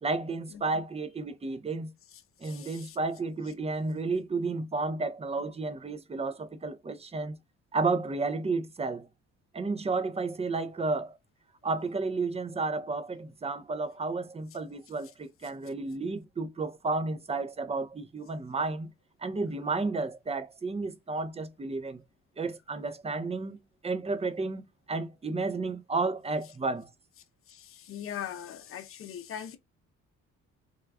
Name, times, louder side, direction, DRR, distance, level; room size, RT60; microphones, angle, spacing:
voice 1, 0.0-1.9 2.4-7.4 7.7-9.1 9.5-11.2 11.6-18.9 19.2-22.0 22.4-24.6 24.9-26.9, right 3 dB, 20° right, 0.6 m, -32 dB
voice 2, 0.5-0.8 2.4-3.0 27.5-29.6, left 9 dB, 45° left, 0.7 m, -41 dB
3.5 x 2.3 x 3.4 m
cardioid pair, 90°, 30 cm